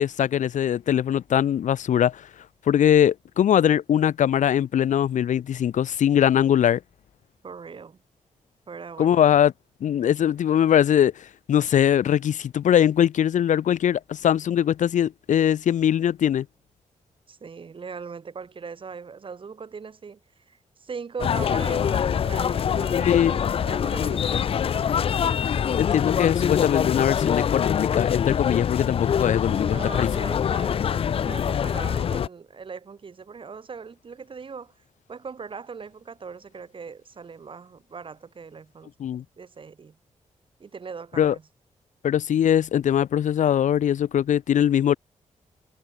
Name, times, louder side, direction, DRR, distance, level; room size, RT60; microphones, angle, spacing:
voice 1, 0.0-2.3 2.7-6.8 9.0-9.5 9.8-16.5 23.0-23.3 25.8-30.1 39.0-39.2 41.2-41.3 42.0-44.9, left 10 dB, 75° left, 0.9 m, -21 dB
voice 2, 7.4-8.0 8.7-9.3 17.3-25.0 29.4-34.7 35.1-38.9 39.4-40.0 40.6-41.4, right 5 dB, 40° right, 4.8 m, -40 dB
sound 1, 21.2-32.3, left 8 dB, 45° left, 0.4 m, -24 dB
wide cardioid pair, 135°, 13 cm